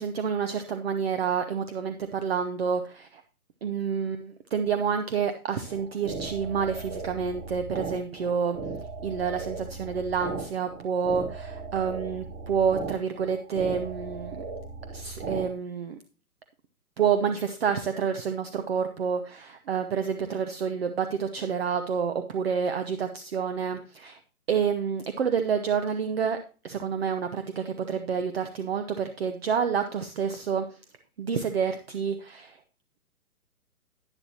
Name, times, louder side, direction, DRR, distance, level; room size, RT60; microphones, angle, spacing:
voice 1, 0.0-3.2 3.6-8.6 9.0-14.4 14.9-16.0 17.0-24.2 24.5-26.4 26.6-30.7 31.2-32.6, right 6 dB, 40° right, 8 dB, 0.9 m, -28 dB
sound 1, 5.7-15.5, right 4 dB, 10° right, 0.7 m, -37 dB
11.0 x 10.0 x 2.9 m, 0.35 s
figure-of-eight pair, 130°, 46 cm